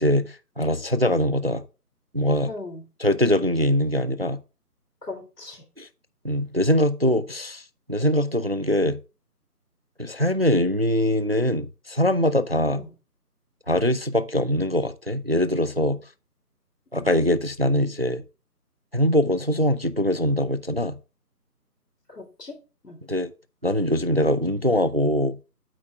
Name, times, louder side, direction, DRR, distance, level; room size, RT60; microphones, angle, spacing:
voice 1, 0.0-1.6 2.1-2.5 3.0-4.4 5.8-5.9 6.2-7.6 7.9-9.0 10.0-12.8 13.7-16.0 16.9-18.2 18.9-21.0 23.1-23.3 23.6-25.4, left 1 dB, 40° right, 0.4 m, -22 dB
voice 2, 2.5-2.8 5.0-5.6 12.7-12.9 16.9-17.1 22.1-22.6 22.8-23.0, left 3 dB, 80° left, 3.3 m, -38 dB
8.5 x 4.5 x 5.3 m
figure-of-eight pair, 160°, 48 cm